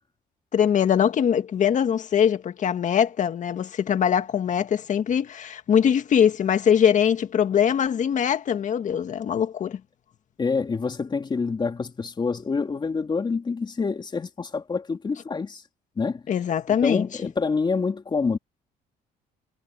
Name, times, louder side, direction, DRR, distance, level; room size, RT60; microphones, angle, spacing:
voice 1, 0.5-9.8 16.3-17.1, left 8 dB, 45° left, 1.8 m, -22 dB
voice 2, 10.4-15.6 16.0-16.2 16.7-18.4, left 4 dB, 25° left, 3.2 m, -27 dB
cardioid pair, 110°, 17 cm